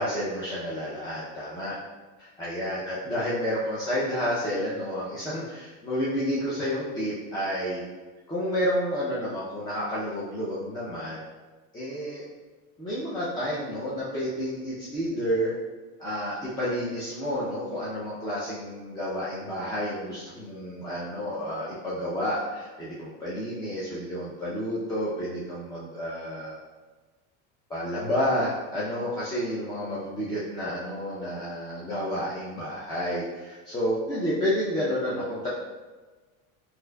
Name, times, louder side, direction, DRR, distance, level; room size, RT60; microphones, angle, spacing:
voice 1, 0.0-1.8 2.2-7.8 8.3-11.2 11.7-12.2 12.8-15.5 16.0-26.6 27.7-35.5, equal, 10° left, -8 dB, 0.5 m, -30 dB
4.1 x 2.7 x 2.2 m, 1.3 s
supercardioid pair, 125°, 42 cm